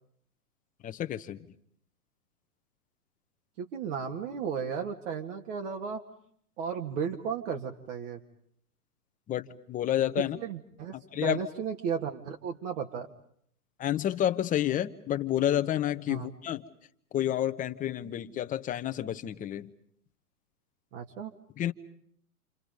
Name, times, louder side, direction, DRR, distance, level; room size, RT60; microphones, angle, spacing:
voice 1, 0.8-1.5 9.3-10.4 10.9-11.4 13.8-16.6 17.1-19.7 21.6-21.7, left 11 dB, 20° left, 10 dB, 1.0 m, -30 dB
voice 2, 3.6-6.0 6.6-8.2 10.4-10.9 11.2-13.1 16.1-16.3 20.9-21.3, right 7 dB, 55° right, 3 dB, 2.2 m, -34 dB
29.0 x 28.5 x 5.3 m, 0.66 s
hypercardioid pair, 120°, 45 cm